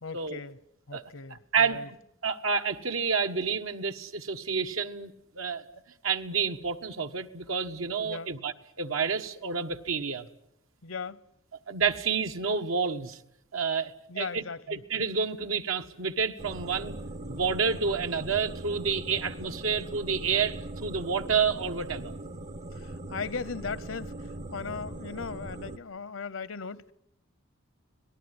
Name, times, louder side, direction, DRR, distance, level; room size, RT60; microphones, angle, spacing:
voice 1, 0.0-0.6 0.9-1.9 8.0-8.3 10.8-11.2 14.1-14.8 22.7-26.9, left 5 dB, 70° left, 0.9 m, -38 dB
voice 2, 1.3-1.8 2.2-5.6 6.0-10.3 11.7-13.2 13.5-17.0 17.3-22.1, right 5 dB, 75° right, 1.4 m, -29 dB
sound 1, 16.4-25.8, right 1 dB, 40° right, 1.0 m, -40 dB
25.5 x 19.0 x 9.7 m
head